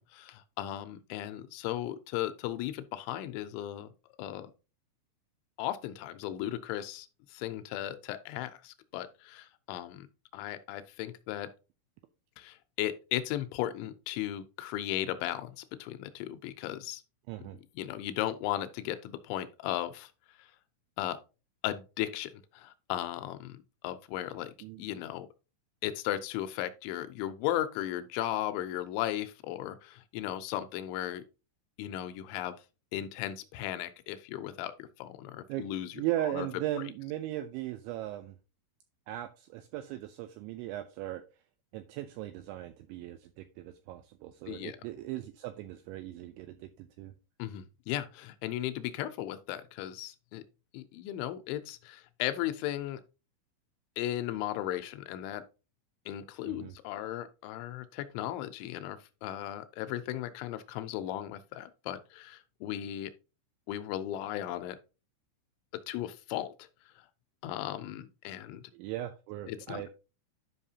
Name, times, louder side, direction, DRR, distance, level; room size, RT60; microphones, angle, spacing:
voice 1, 0.0-3.9 4.2-4.5 5.6-10.1 10.3-11.5 12.4-17.0 17.4-17.5 17.8-20.1 20.4-20.5 21.0-21.2 21.6-24.5 24.8-25.3 25.8-31.2 31.8-32.5 32.9-34.7 35.0-36.0 36.3-36.5 44.5-44.8 47.4-50.4 50.7-53.0 54.0-55.4 56.1-63.1 63.7-64.8 65.9-66.5 67.4-68.6 69.5-69.9, left 13 dB, 80° left, 2.8 m, -36 dB
voice 2, 17.3-17.6 24.6-24.8 35.5-35.7 35.9-38.4 39.1-41.2 41.7-47.1 56.4-56.7 68.7-69.9, right 14 dB, 85° right, 2.7 m, -38 dB
11.0 x 5.5 x 2.8 m
omnidirectional pair, 5.9 m